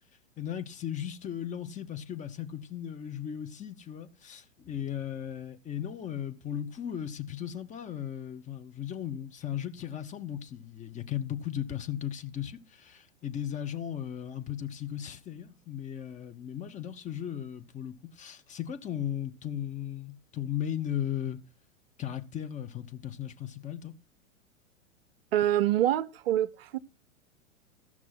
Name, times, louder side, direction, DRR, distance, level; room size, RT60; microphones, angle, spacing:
voice 1, 0.4-21.4 22.0-23.9, left 10 dB, 20° left, 0.9 m, -36 dB
voice 2, 25.3-26.8, right 12 dB, 50° right, 0.6 m, -26 dB
15.0 x 6.1 x 5.8 m
figure-of-eight pair, 105°, 40 cm